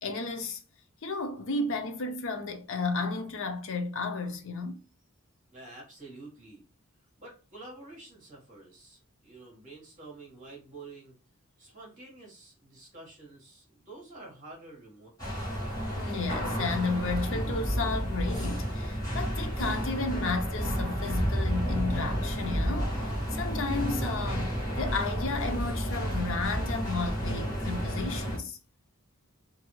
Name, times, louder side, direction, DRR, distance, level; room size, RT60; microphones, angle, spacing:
voice 1, 0.0-0.6 1.0-4.8 16.0-28.6, left 3 dB, 60° left, 0.5 m, -33 dB
voice 2, 5.5-6.6 7.2-11.2 11.6-15.5, right 2 dB, 35° right, 1.4 m, -49 dB
sound 1, 15.2-28.4, equal, 15° left, 1.3 m, -31 dB
2.7 x 2.6 x 2.9 m
head